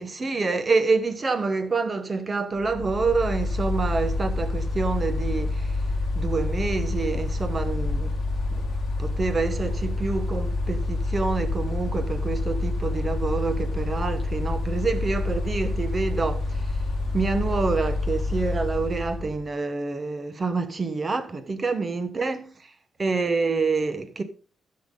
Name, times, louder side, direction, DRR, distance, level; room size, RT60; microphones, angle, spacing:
voice 1, 0.0-5.7 6.1-8.2 8.5-8.7 9.0-16.7 17.1-22.5 23.0-24.2, right 4 dB, 25° right, 1.0 m, -27 dB
Mechanical fan, 2.6-19.4, left 2 dB, 45° left, 1.6 m, -27 dB
14.0 x 5.8 x 3.7 m
wide cardioid pair, 165°, 0 cm